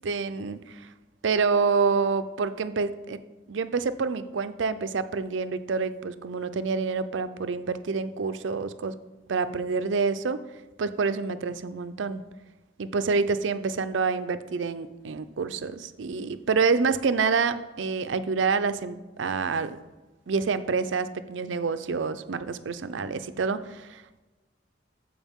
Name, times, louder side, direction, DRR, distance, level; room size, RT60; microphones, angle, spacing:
voice 1, 0.0-0.9 1.2-3.2 3.5-9.0 9.3-10.4 10.8-12.2 12.8-19.8 20.3-24.0, right 4 dB, 80° right, 11 dB, 0.5 m, -27 dB
14.5 x 4.8 x 3.6 m, 1.1 s
head